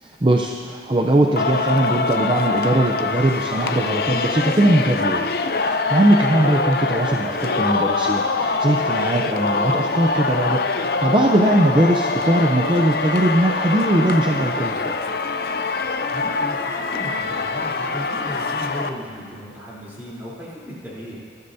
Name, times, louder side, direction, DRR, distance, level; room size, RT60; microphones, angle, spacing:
voice 1, 0.0-5.3 5.6-14.9, right 1 dB, 30° right, 0 dB, 0.6 m, -20 dB
Singing, 1.4-18.9, left 3 dB, 60° left, 0.5 m, -24 dB
voice 2, 16.1-21.2, equal, 10° right, -8 dB, 3.5 m, -35 dB
20.0 x 13.0 x 2.7 m, 2.2 s
head